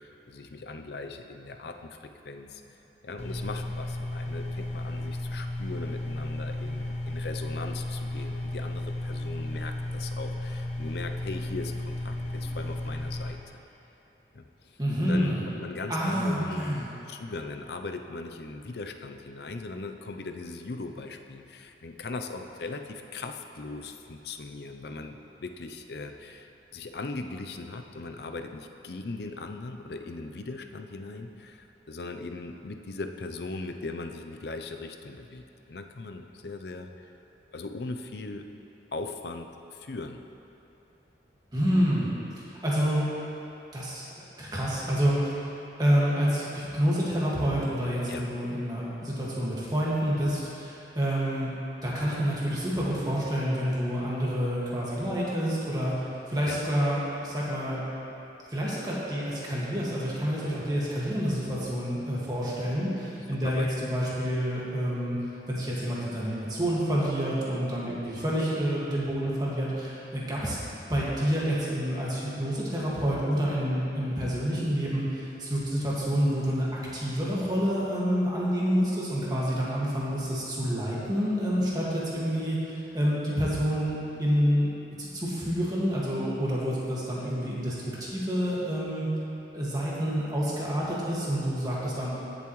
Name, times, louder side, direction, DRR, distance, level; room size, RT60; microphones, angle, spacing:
voice 1, 0.0-2.6 3.0-13.4 14.3-36.9 37.5-38.5 38.9-40.2 48.1-48.3 56.5-56.6 63.3-63.7, left 3 dB, 60° left, 6 dB, 0.5 m, -39 dB
sound 1, 3.2-13.3, left 1 dB, 35° left, 1.4 m, -34 dB
voice 2, 14.8-15.4 15.9-16.8 41.5-42.1 42.4-43.0 43.7-45.4 45.8-51.5 51.8-55.9 56.3-57.8 58.5-65.2 65.5-70.6 70.9-82.6 82.9-84.7 85.0-87.7 88.0-89.1 89.5-92.1, equal, 20° right, -7 dB, 1.9 m, -28 dB
16.0 x 7.1 x 3.1 m, 2.9 s
head